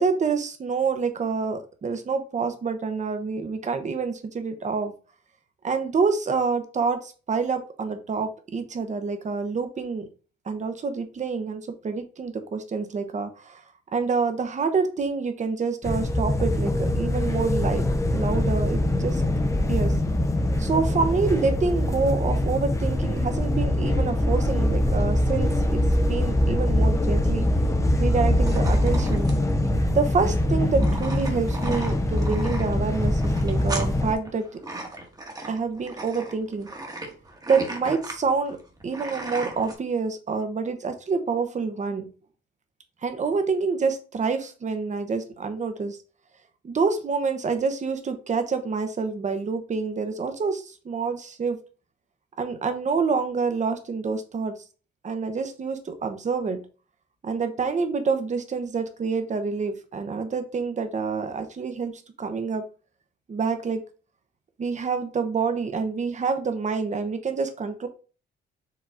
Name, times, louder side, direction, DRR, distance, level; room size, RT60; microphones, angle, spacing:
voice 1, 0.0-4.9 5.6-10.1 10.5-13.6 13.9-17.8 18.1-19.2 19.7-20.0 20.6-25.8 26.1-27.5 28.0-29.3 29.9-34.4 35.5-36.7 37.5-38.6 38.8-42.1 43.0-46.0 46.6-51.6 52.4-54.5 55.0-56.6 57.2-62.6 63.3-63.8 64.6-67.9, right 5 dB, 35° right, 8 dB, 0.9 m, -27 dB
sound 1, 15.8-34.1, left 1 dB, 15° left, 0.7 m, -23 dB
sound 2, 28.5-39.8, right 2 dB, 20° right, 1.2 m, -37 dB
4.9 x 3.0 x 3.6 m, 0.36 s
cardioid pair, 90°, 20 cm